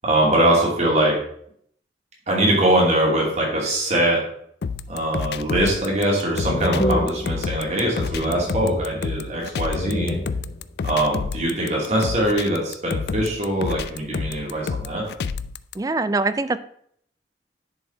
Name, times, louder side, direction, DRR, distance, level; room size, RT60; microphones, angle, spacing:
voice 1, 0.0-1.1 2.3-4.2 4.9-10.1 10.8-15.1, right 1 dB, 40° right, -3 dB, 2.6 m, -22 dB
sound 1, 4.6-15.7, left 5 dB, 60° left, 0.4 m, -30 dB
sound 2, 5.9-6.0 6.3-7.8 8.0-9.4 9.7-10.7, left 1 dB, 45° left, 0.8 m, -28 dB
voice 2, 15.8-16.6, right 3 dB, 20° right, 14 dB, 0.3 m, -23 dB
10.0 x 4.3 x 4.4 m, 0.66 s
head